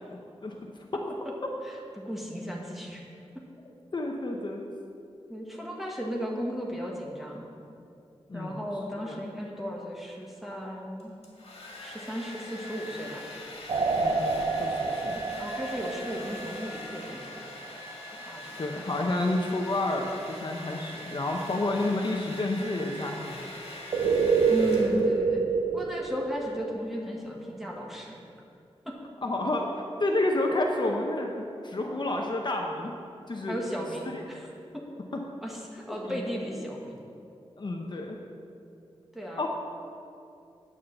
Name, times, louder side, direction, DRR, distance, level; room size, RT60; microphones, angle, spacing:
voice 1, 0.1-0.5 0.9-1.0 3.9-4.6 8.3-8.7 8.9-9.3 14.0-15.2 18.6-23.4 29.2-32.9 33.3-33.6 34.1-34.2 35.9-36.2 37.6-38.2 39.4-39.5, left 2 dB, 45° left, 1 dB, 0.8 m, -30 dB
voice 2, 1.6-3.0 5.3-7.5 8.3-11.1 11.8-13.2 15.1-17.4 18.2-18.9 24.5-25.4 25.7-28.2 28.8-28.9 33.5-34.5 34.7-34.8 35.4-37.1 39.1-39.5, equal, ahead, -2 dB, 1.5 m, -35 dB
Domestic sounds home sounds, 11.0-25.3, left 1 dB, 65° left, 2.0 m, -42 dB
sound 1, 13.7-17.0 23.9-26.7, right 4 dB, 60° right, 0.7 m, -27 dB
8.9 x 6.5 x 6.6 m, 2.6 s
wide cardioid pair, 115°, 11 cm